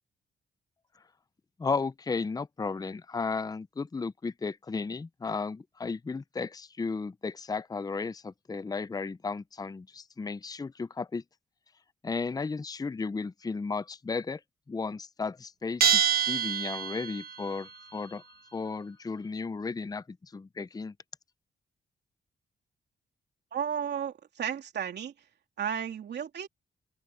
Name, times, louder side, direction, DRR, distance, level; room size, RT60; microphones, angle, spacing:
voice 1, 1.6-11.2 12.0-14.4 14.7-18.2 18.5-20.9, left 4 dB, 20° left, 0.6 m, -34 dB
Bell, 15.8-17.4, right 9 dB, 60° right, 1.1 m, -26 dB
voice 2, 23.5-25.1 25.6-26.5, right 8 dB, 75° right, 3.1 m, -33 dB
open air
cardioid pair, 80°, 18 cm